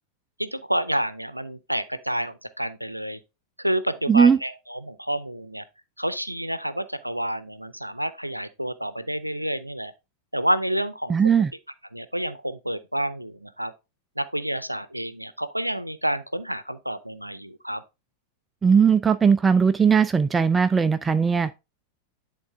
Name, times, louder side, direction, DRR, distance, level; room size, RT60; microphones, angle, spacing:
voice 1, 0.4-3.2 3.6-5.6 6.0-9.9 10.3-11.2 11.9-13.7 14.2-17.8, right 1 dB, 90° right, 0.6 m, -29 dB
voice 2, 4.1-4.4 11.1-11.5 18.6-21.5, right 6 dB, 15° right, 0.3 m, -18 dB
10.5 x 3.7 x 3.5 m
figure-of-eight pair, 90°, 0 cm